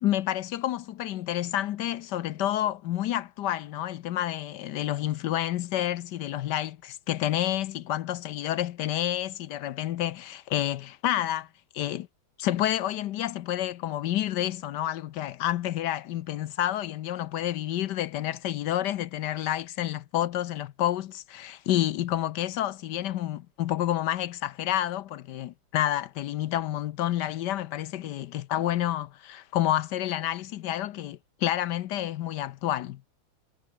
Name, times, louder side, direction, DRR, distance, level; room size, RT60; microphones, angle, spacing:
voice 1, 0.0-11.5 11.7-12.1 12.4-33.0, left 12 dB, 70° left, 1.1 m, -29 dB
omnidirectional pair, 2.3 m